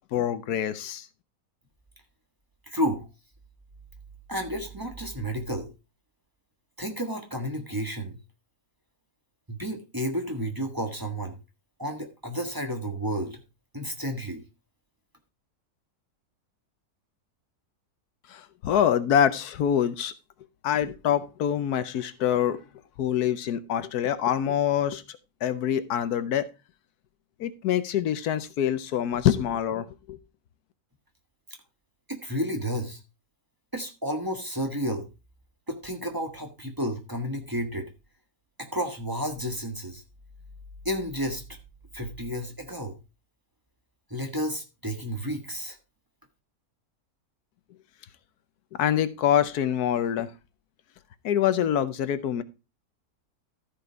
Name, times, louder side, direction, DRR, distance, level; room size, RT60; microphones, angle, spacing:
voice 1, 0.1-1.1 18.3-20.1 20.6-22.6 23.0-26.5 27.4-30.2 48.8-50.3 51.2-52.4, left 10 dB, 80° left, 13 dB, 1.3 m, -25 dB
voice 2, 2.7-3.1 4.3-5.7 6.8-8.2 9.5-11.4 11.8-13.4 13.7-14.4 32.1-33.0 33.7-35.1 35.7-37.9 38.6-40.0 40.8-41.4 41.9-43.0 44.1-45.8, equal, 15° right, 2 dB, 1.5 m, -31 dB
13.5 x 5.2 x 4.5 m, 0.28 s
omnidirectional pair, 1.6 m